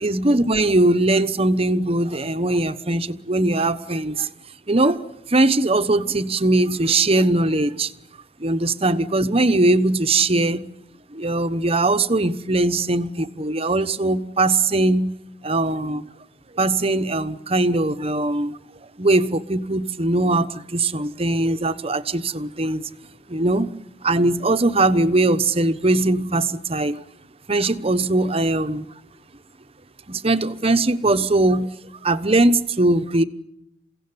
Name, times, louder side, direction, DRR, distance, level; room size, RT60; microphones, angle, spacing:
voice 1, 0.0-4.3 4.7-5.0 5.3-7.9 8.4-10.7 11.1-15.2 15.4-16.0 16.5-18.6 19.0-22.8 23.3-23.7 24.0-27.0 27.5-28.9 30.1-33.2, right 2 dB, 35° right, 1.1 m, -20 dB
29.5 x 17.0 x 9.8 m
head